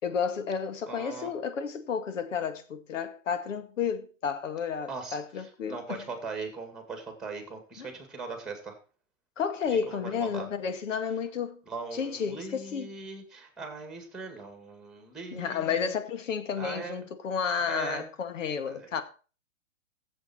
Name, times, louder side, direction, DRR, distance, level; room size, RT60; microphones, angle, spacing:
voice 1, 0.0-6.0 7.8-7.9 9.4-11.6 11.9-12.9 15.3-19.0, left 6 dB, 70° left, 2.2 m, -31 dB
voice 2, 0.9-1.3 4.9-8.8 9.7-10.5 11.7-15.9 16.6-17.0 17.6-18.1 18.7-18.9, right 4 dB, ahead, 2.3 m, -40 dB
15.5 x 7.6 x 4.5 m
hypercardioid pair, 160°, 39 cm